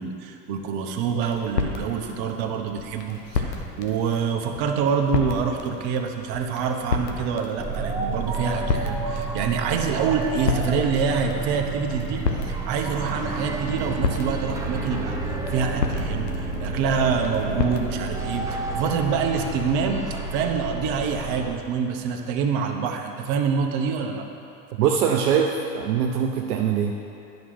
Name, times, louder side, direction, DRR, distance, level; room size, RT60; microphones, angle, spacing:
voice 1, 0.0-24.2, right 6 dB, 45° right, 3 dB, 1.1 m, -26 dB
sound 1, 1.1-18.3, left 4 dB, 75° left, 1.1 m, -32 dB
sound 2, 7.6-21.5, right 3 dB, 5° right, 0.9 m, -30 dB
voice 2, 24.7-26.9, right 7 dB, 65° right, 1 dB, 0.8 m, -22 dB
11.0 x 5.3 x 6.1 m, 2.9 s
figure-of-eight pair, 85°, 49 cm